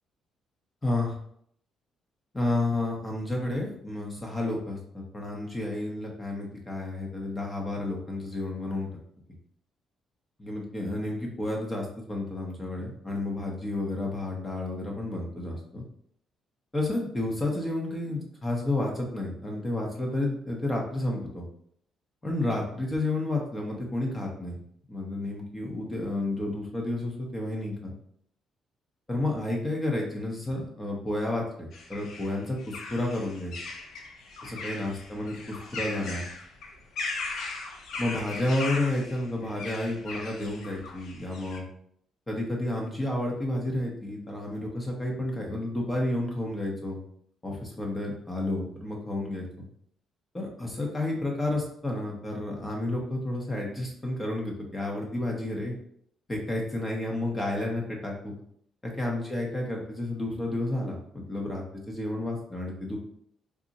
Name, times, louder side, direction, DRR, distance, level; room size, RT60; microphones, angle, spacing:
voice 1, 0.8-1.1 2.3-8.9 10.4-15.8 16.7-21.4 22.2-24.6 24.9-27.9 29.1-33.5 34.4-36.2 38.0-41.6 42.3-47.0 47.4-49.6 50.3-55.8 56.3-58.3 58.8-63.0, left 1 dB, 15° left, -1 dB, 0.7 m, -31 dB
sound 1, 31.7-41.6, left 3 dB, 65° left, 0.6 m, -38 dB
3.6 x 2.0 x 3.9 m, 0.67 s
cardioid pair, 130°, 0 cm